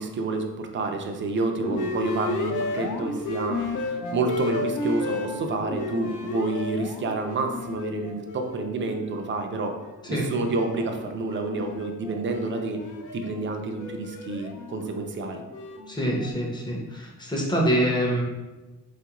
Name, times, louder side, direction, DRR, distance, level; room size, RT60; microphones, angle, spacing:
voice 1, 0.0-9.8 10.1-12.8 13.1-15.4, right 3 dB, 40° right, 4 dB, 0.4 m, -29 dB
sound 1, 1.6-9.3 9.7-16.3, left 2 dB, 70° left, 0.5 m, -33 dB
voice 2, 15.9-18.2, equal, 15° left, -1 dB, 0.6 m, -25 dB
3.7 x 2.4 x 2.9 m, 1.1 s
wide cardioid pair, 140°, 32 cm